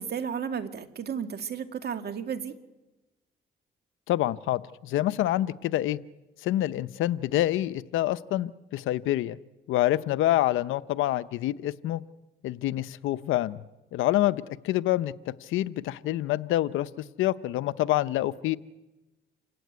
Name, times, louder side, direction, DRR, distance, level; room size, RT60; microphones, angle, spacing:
voice 1, 0.0-2.5, right 7 dB, 55° right, 8 dB, 2.1 m, -33 dB
voice 2, 4.1-6.0 6.4-9.4 9.7-12.0 12.4-13.6 13.9-16.9 17.2-18.6, left 14 dB, 90° left, 16 dB, 0.7 m, -27 dB
28.0 x 16.0 x 9.5 m, 1.1 s
cardioid pair, 90°, 20 cm